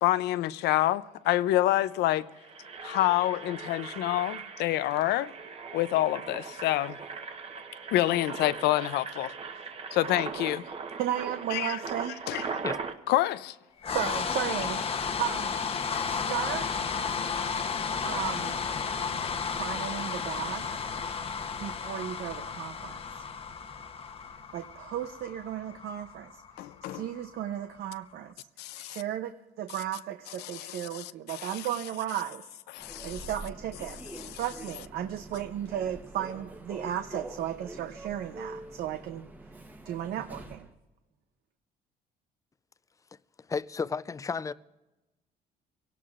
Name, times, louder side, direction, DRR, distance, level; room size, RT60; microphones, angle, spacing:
voice 1, 0.0-2.3 2.8-5.3 5.7-7.0 7.9-9.3 9.9-10.6 11.5-11.8 12.3-12.6 13.1-13.6 26.6-27.1 28.6-29.0 30.4-31.7 32.7-33.3 34.2-34.4, left 15 dB, 80° left, 0.5 m, -28 dB
Engine, 1.2-1.3 1.5-1.8 2.2-12.9, right 5 dB, 35° right, 1.1 m, -39 dB
voice 2, 11.0-12.2 12.6-12.7 13.9-14.8 15.2-15.5 16.1-16.7 18.0-18.6 19.6-20.7 21.6-23.0 24.5-26.3 26.9-28.3 28.8-32.5 33.0-34.0 34.3-39.3 39.8-40.7, right 11 dB, 70° right, 0.7 m, -34 dB
sound 1, 13.8-27.9, left 6 dB, 35° left, 0.9 m, -33 dB
Human voice / Subway metro underground, 32.8-40.7, right 2 dB, 10° right, 1.0 m, -45 dB
voice 3, 43.5-44.5, left 5 dB, 20° left, 0.4 m, -32 dB
24.0 x 17.5 x 2.5 m
cardioid pair, 110°, 17 cm